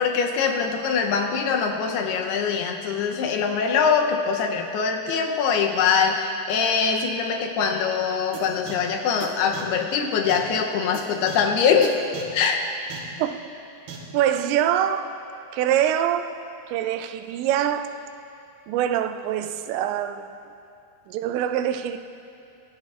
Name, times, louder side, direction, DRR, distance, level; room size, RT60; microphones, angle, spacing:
voice 1, 0.0-12.0 12.3-12.7, left 6 dB, 75° left, 3 dB, 2.6 m, -23 dB
sound 1, 8.3-8.4 8.7-8.8 9.2-9.3 9.5-9.6 10.3-10.4 10.9-11.0 11.3-11.4 11.8-11.9 12.1-12.2 12.9-13.0 13.9-14.0, right 8 dB, 65° right, 3.3 m, -36 dB
voice 2, 14.1-15.1 15.5-16.4 16.7-17.9 18.7-20.3 21.1-22.0, right 10 dB, 85° right, 8 dB, 2.9 m, -24 dB
25.0 x 14.5 x 2.5 m, 2.6 s
omnidirectional pair, 5.1 m